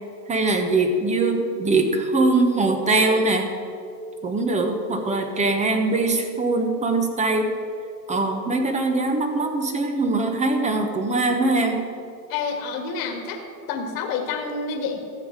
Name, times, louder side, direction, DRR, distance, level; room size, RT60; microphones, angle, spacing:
voice 1, 0.3-3.5 4.2-7.6 8.1-11.9, right 2 dB, 15° right, 5 dB, 1.0 m, -22 dB
voice 2, 12.3-13.4 13.7-15.0, left 5 dB, 45° left, 4 dB, 1.7 m, -28 dB
13.5 x 7.2 x 6.4 m, 2.5 s
hypercardioid pair, 120°, 50 cm